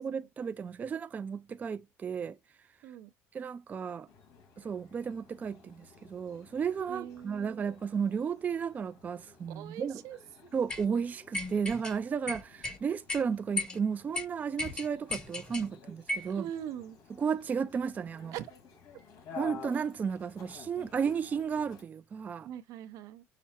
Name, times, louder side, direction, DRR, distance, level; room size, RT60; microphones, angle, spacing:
voice 1, 0.0-2.4 3.3-4.1 4.6-10.0 10.5-16.5 17.2-18.3 19.3-22.5, right 6 dB, 30° right, 0.3 m, -33 dB
sound 1, 4.1-21.8, left 5 dB, 75° left, 1.7 m, -52 dB
voice 2, 6.9-7.6 9.5-10.2 16.2-17.0 18.3-18.5 22.4-23.2, right 11 dB, 75° right, 0.6 m, -42 dB
sound 2, 10.7-10.8 11.3-11.9 12.3-12.8 13.1-13.2 13.6-13.8 14.1-14.2 14.6-15.7 16.1-16.3, left 2 dB, 15° left, 1.2 m, -35 dB
5.8 x 2.0 x 4.3 m
cardioid pair, 125°, 6 cm